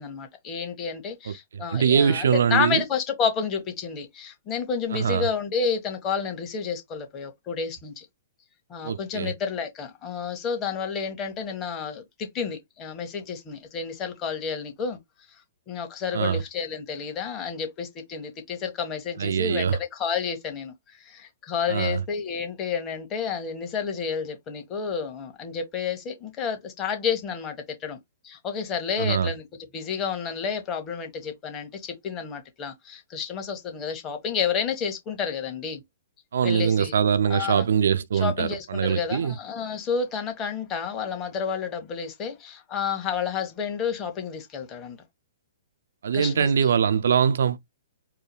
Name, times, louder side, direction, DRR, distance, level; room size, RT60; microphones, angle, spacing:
voice 1, 0.0-8.0 8.7-15.0 15.7-28.0 28.2-29.5 29.7-35.8 36.4-36.9 37.3-37.6 38.1-45.0 46.1-46.5, left 6 dB, 25° left, 1.6 m, -30 dB
voice 2, 1.3-2.8 4.9-5.3 8.8-9.3 16.1-16.4 19.2-19.8 21.7-22.0 29.0-29.3 36.3-39.4 46.0-47.6, right 7 dB, 65° right, 0.5 m, -23 dB
4.6 x 2.2 x 3.3 m
figure-of-eight pair, 120°, 0 cm